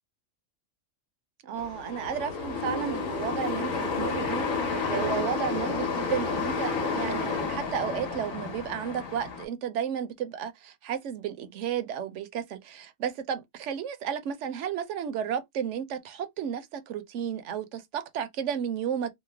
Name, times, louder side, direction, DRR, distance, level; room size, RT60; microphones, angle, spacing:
voice 1, 1.4-19.1, right 8 dB, 70° right, 0.9 m, -33 dB
sound 1, 1.6-9.5, left 4 dB, 85° left, 1.4 m, -31 dB
3.1 x 2.1 x 3.3 m
omnidirectional pair, 1.4 m